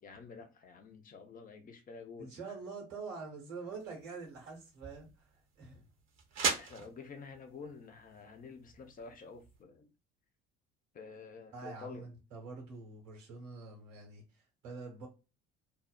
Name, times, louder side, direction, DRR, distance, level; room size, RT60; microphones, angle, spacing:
voice 1, 0.0-2.5 6.6-9.9 10.9-12.1, left 5 dB, 20° left, 0.5 m, -49 dB
voice 2, 2.2-5.3 5.6-5.9 6.8-6.9 11.5-15.1, right 4 dB, 75° right, 1.1 m, -46 dB
sound 1, 3.7-9.6, right 5 dB, 45° right, 0.8 m, -41 dB
2.6 x 2.0 x 2.3 m
figure-of-eight pair, 55°, 38 cm